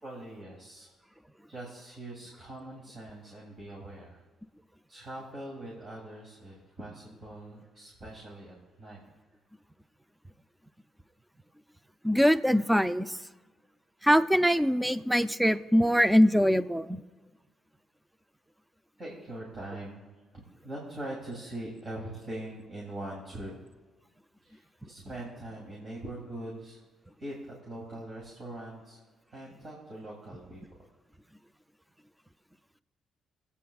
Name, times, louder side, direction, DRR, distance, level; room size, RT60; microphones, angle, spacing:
voice 1, 0.0-0.9 1.5-4.2 4.9-9.0 19.0-20.1 20.3-23.5 24.4-26.8 27.2-27.3 27.6-29.0 29.3-30.6, right 1 dB, 40° right, -4 dB, 2.8 m, -42 dB
voice 2, 12.0-13.1 14.0-17.0, equal, 5° right, 13 dB, 0.5 m, -23 dB
24.0 x 8.5 x 2.4 m, 1.2 s
cardioid pair, 90°, 0 cm